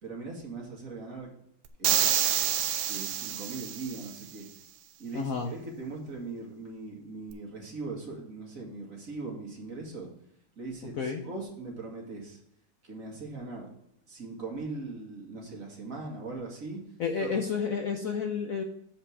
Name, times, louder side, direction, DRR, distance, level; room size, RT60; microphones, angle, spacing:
voice 1, 0.0-1.3 1.8-2.1 2.9-4.5 5.0-10.1 10.6-10.9 11.2-12.4 12.8-13.7 14.1-16.8 17.2-17.3, right 3 dB, 40° right, -1 dB, 2.3 m, -40 dB
sound 1, 1.8-4.1, right 10 dB, 75° right, 1.4 m, -28 dB
voice 2, 5.1-5.5 11.0-11.2 17.0-18.6, left 6 dB, 65° left, 4 dB, 0.8 m, -30 dB
7.6 x 5.0 x 6.2 m, 0.73 s
omnidirectional pair, 2.3 m